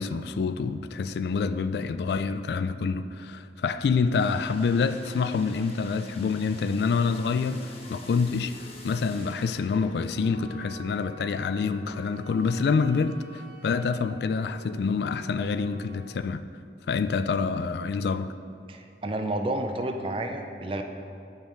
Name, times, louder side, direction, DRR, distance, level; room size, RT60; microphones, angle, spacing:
voice 1, 0.0-8.5 8.8-16.4 16.9-18.3, left 5 dB, 70° left, 0.3 m, -27 dB
sound 1, 4.1-11.0, left 2 dB, 35° left, 0.8 m, -47 dB
Wind instrument woodwind instrument, 10.1-16.2, left 1 dB, 50° right, 1.5 m, -48 dB
voice 2, 18.7-20.8, right 1 dB, 30° right, 0.5 m, -30 dB
8.6 x 5.6 x 4.6 m
head